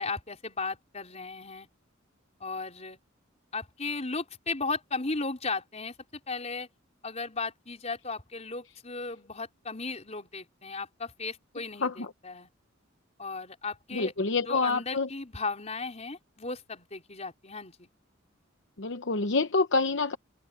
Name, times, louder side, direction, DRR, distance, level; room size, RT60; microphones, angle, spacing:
voice 1, 0.0-1.7 2.4-3.0 3.5-5.9 6.3-6.7 7.0-12.5 13.2-14.1 14.5-17.9, left 3 dB, 35° left, 4.7 m, -36 dB
voice 2, 13.9-15.1 18.8-20.2, left 3 dB, 65° left, 0.9 m, -27 dB
head